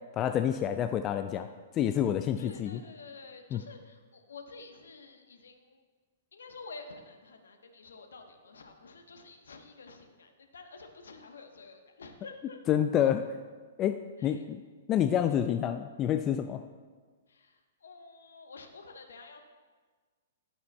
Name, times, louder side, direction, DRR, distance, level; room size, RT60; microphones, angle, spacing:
voice 1, 0.1-1.5 1.7-2.8 3.5-3.6 12.7-13.3 13.8-14.6 14.9-16.6, left 10 dB, 25° left, 8 dB, 0.3 m, -28 dB
voice 2, 2.4-5.8 6.3-12.6 14.2-14.4 15.3-15.4 17.3-19.4, left 4 dB, 65° left, 5 dB, 1.1 m, -49 dB
11.5 x 10.0 x 2.3 m, 1.4 s
figure-of-eight pair, 110°, 0 cm